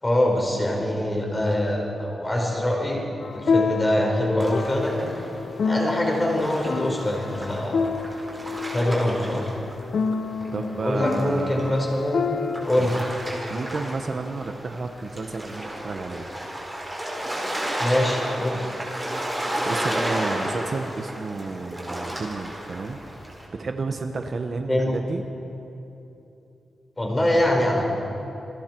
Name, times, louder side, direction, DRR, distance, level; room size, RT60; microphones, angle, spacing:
voice 1, 0.0-3.0 3.3-5.1 5.6-7.8 8.7-9.5 10.8-12.3 12.6-13.1 17.8-18.7 24.7-24.9 27.0-27.8, left 1 dB, 15° left, -1 dB, 4.8 m, -24 dB
sound 1, 3.2-12.7, left 5 dB, 55° left, 1.0 m, -28 dB
sound 2, 4.4-10.1 10.4-23.5, right 1 dB, 10° right, 5.2 m, -33 dB
voice 2, 10.2-11.9 12.8-13.0 13.5-16.3 19.6-23.0 23.5-25.2, right 3 dB, 45° right, 5 dB, 1.1 m, -31 dB
28.0 x 22.5 x 4.6 m, 2.9 s
wide cardioid pair, 125°, 0 cm